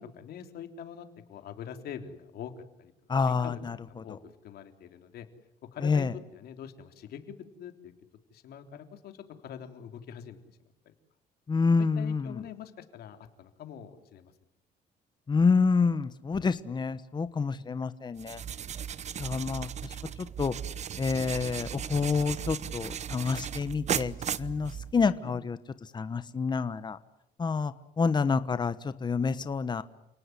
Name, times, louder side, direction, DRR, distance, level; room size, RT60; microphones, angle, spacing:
voice 1, 0.0-2.9 3.3-3.6 3.9-4.2 4.4-5.3 5.7-7.9 8.3-9.2 9.4-10.4 10.9-11.0 11.8-14.3 25.0-25.3, left 8 dB, 70° left, 6 dB, 3.6 m, -44 dB
voice 2, 3.1-3.8 5.8-6.1 11.5-12.4 15.3-18.4 19.2-19.9 20.4-20.5 21.0-25.6 25.9-27.0 27.4-29.8, left 5 dB, 25° left, 13 dB, 1.2 m, -28 dB
sound 1, 18.2-25.2, right 8 dB, 40° right, 0.9 m, -36 dB
29.5 x 19.0 x 9.8 m, 0.84 s
cardioid pair, 110°, 17 cm